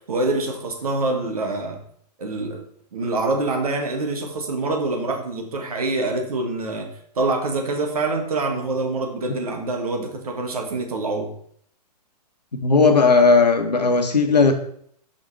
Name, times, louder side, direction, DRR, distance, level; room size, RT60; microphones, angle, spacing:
voice 1, 0.1-1.8 2.2-2.6 2.9-6.9 7.1-11.3, right 2 dB, 60° right, 3 dB, 1.6 m, -25 dB
voice 2, 12.6-14.5, left 4 dB, 75° left, 6 dB, 1.2 m, -16 dB
5.7 x 5.4 x 4.7 m, 0.64 s
figure-of-eight pair, 110°, 21 cm